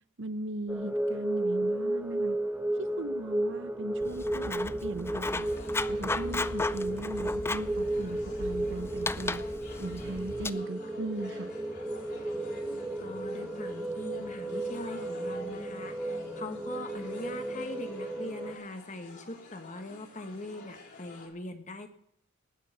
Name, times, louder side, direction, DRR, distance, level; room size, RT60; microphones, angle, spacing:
voice 1, 0.2-2.4 2.8-5.5 5.9-9.4 9.8-11.5, right 2 dB, 60° right, 14 dB, 0.8 m, -38 dB
sound 1, 0.7-18.5, right 1 dB, 5° right, 1.4 m, -34 dB
Writing, 4.0-10.5, left 3 dB, 10° left, 0.4 m, -36 dB
sound 2, 5.2-21.3, left 3 dB, 55° left, 4.3 m, -52 dB
voice 2, 13.0-21.9, left 2 dB, 35° left, 7 dB, 1.7 m, -42 dB
19.0 x 6.8 x 6.7 m, 0.73 s
head